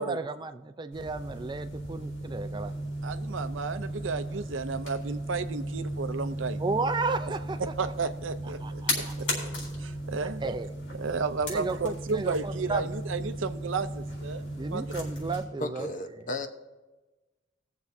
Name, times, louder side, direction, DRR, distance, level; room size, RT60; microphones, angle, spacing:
voice 1, 0.0-2.7 6.6-7.6 8.6-9.1 10.2-10.7 11.5-12.9 14.6-16.3, right 3 dB, 25° right, 10 dB, 0.4 m, -33 dB
sound 1, 0.9-15.4, equal, 80° left, 3.9 m, -35 dB
voice 2, 3.0-6.6 7.6-9.0 9.8-10.4 10.9-14.8, right 4 dB, 85° right, 12 dB, 0.6 m, -33 dB
voice 3, 15.6-16.5, left 2 dB, 45° left, 7 dB, 0.9 m, -34 dB
21.0 x 7.1 x 2.7 m, 1.2 s
head